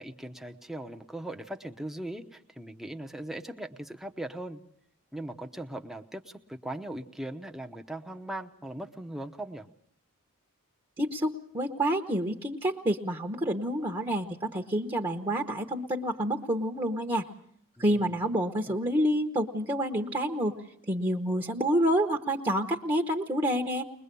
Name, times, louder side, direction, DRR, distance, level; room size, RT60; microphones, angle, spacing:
voice 1, 0.0-4.6 5.1-9.7 17.8-18.2, right 1 dB, ahead, 4 dB, 0.9 m, -39 dB
voice 2, 11.0-17.2 17.8-20.6 20.9-23.8, right 1 dB, 20° right, 2 dB, 1.1 m, -28 dB
21.5 x 21.5 x 6.9 m, 0.68 s
head